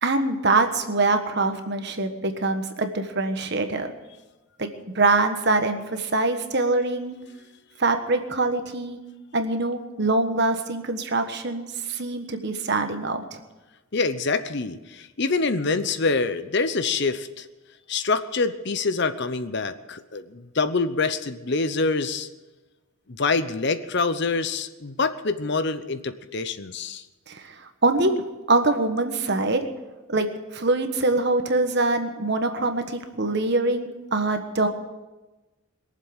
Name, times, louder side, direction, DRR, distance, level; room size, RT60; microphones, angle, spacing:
voice 1, 0.0-3.9 4.6-4.7 4.9-7.2 7.8-9.0 9.3-13.4 27.3-27.5 27.8-28.1 28.5-29.7 30.1-30.3 30.5-34.7, right 2 dB, 50° right, 7 dB, 1.4 m, -24 dB
voice 2, 13.9-17.5 17.9-22.3 23.1-27.0, left 4 dB, 50° left, 12 dB, 0.8 m, -26 dB
22.0 x 7.5 x 8.8 m, 1.1 s
head